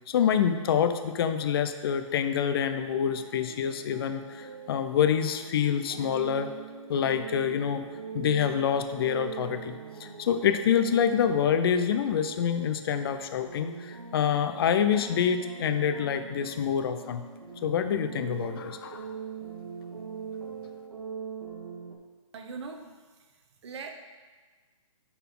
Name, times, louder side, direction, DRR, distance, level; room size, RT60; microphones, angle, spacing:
voice 1, 0.1-6.5 6.9-7.8 8.1-17.2 17.6-19.1, left 8 dB, 45° left, 9 dB, 0.5 m, -26 dB
sound 1, 2.8-22.0, right 5 dB, 80° right, 1.3 m, -42 dB
voice 2, 22.3-22.9 23.2-23.9, right 5 dB, 55° right, 4 dB, 1.0 m, -41 dB
10.0 x 4.1 x 3.8 m, 1.4 s
hypercardioid pair, 140°, 17 cm